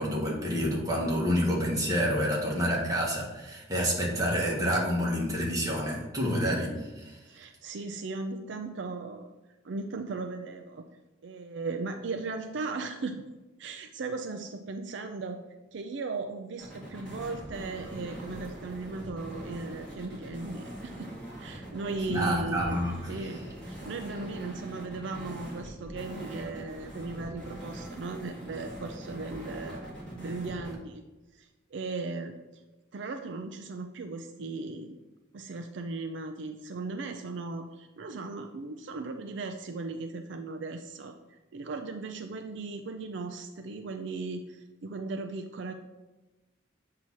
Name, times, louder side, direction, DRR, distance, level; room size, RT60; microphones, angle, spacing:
voice 1, 0.0-7.2 22.1-23.2, equal, 20° right, -3 dB, 1.3 m, -28 dB
voice 2, 7.3-9.3 9.6-10.9 11.2-13.2 13.6-15.4 15.7-21.1 21.4-29.9 30.2-31.0 31.3-32.4 32.9-35.0 35.3-45.7, right 3 dB, 65° right, 6 dB, 0.4 m, -37 dB
sound 1, 16.6-30.7, right 1 dB, 5° left, 1.5 m, -42 dB
7.9 x 2.8 x 6.0 m, 1.1 s
head